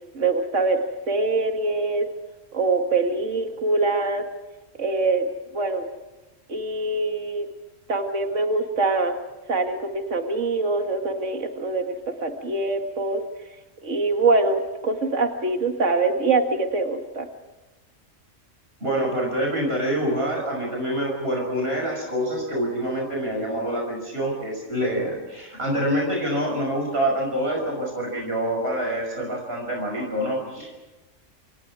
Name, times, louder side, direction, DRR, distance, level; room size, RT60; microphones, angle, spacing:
voice 1, 0.1-2.1 2.5-4.3 4.8-5.3 5.5-5.9 6.5-7.5 7.9-9.2 9.5-13.2 13.8-17.3, right 3 dB, 70° right, 4 dB, 2.3 m, -24 dB
voice 2, 18.8-30.8, equal, 50° right, -1 dB, 6.2 m, -26 dB
28.5 x 28.0 x 4.8 m, 1.1 s
omnidirectional pair, 1.3 m